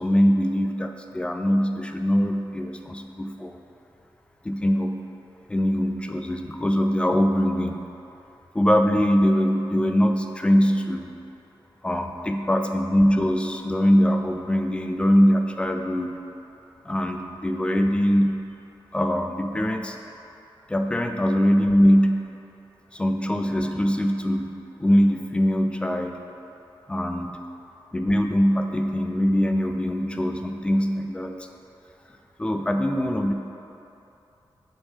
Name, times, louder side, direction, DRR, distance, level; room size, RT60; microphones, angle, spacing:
voice 1, 0.0-3.6 4.4-4.9 5.5-7.8 8.5-11.1 11.8-16.1 16.8-18.3 18.9-20.0 20.7-22.2 22.9-24.5 24.8-26.2 26.9-27.4 27.9-31.3 32.4-33.3, equal, 10° left, 4 dB, 0.3 m, -22 dB
6.9 x 3.6 x 5.6 m, 2.9 s
wide cardioid pair, 175°, 9 cm